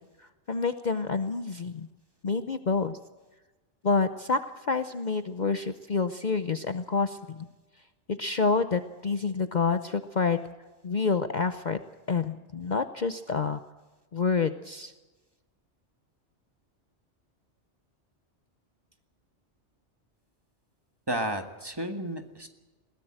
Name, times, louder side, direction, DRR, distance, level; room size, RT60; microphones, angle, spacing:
voice 1, 0.5-1.9 2.2-3.0 3.8-7.5 8.1-10.4 10.8-11.8 12.1-13.6 14.1-14.9, left 4 dB, 45° left, 10 dB, 0.8 m, -28 dB
voice 2, 21.1-22.5, right 1 dB, 20° right, 6 dB, 1.7 m, -32 dB
21.5 x 17.0 x 7.8 m, 1.2 s
omnidirectional pair, 1.2 m